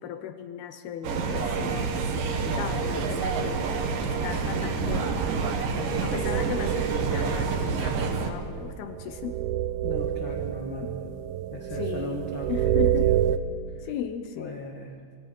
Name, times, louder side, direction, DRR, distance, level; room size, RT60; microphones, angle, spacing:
voice 1, 0.0-2.0 2.5-3.6 4.0-5.2 6.0-9.4 10.8-11.1 11.7-13.1 13.8-14.6, left 9 dB, 75° left, 9 dB, 2.6 m, -36 dB
sound 1, 1.0-8.3, right 5 dB, 60° right, 3.1 m, -28 dB
voice 2, 2.4-2.8 5.8-6.5 9.8-10.9 11.5-13.2 13.7-13.9 14.4-14.9, left 2 dB, 50° left, 2 dB, 1.5 m, -38 dB
sound 2, 6.2-13.4, right 12 dB, 75° right, 2.4 m, -28 dB
26.0 x 25.0 x 5.4 m, 2.2 s
omnidirectional pair, 4.8 m